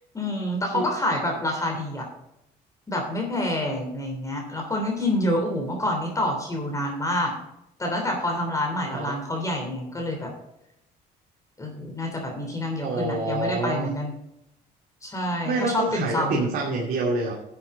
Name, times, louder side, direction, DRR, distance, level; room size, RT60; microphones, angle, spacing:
voice 1, 0.1-2.1 2.9-7.3 7.8-10.3 11.6-14.1 15.0-16.4, left 1 dB, 20° left, 1 dB, 3.2 m, -27 dB
voice 2, 8.8-9.2 12.8-13.9 15.4-17.3, right 2 dB, 60° right, -2 dB, 2.5 m, -27 dB
11.5 x 8.3 x 3.8 m, 0.84 s
cardioid pair, 110°, 17 cm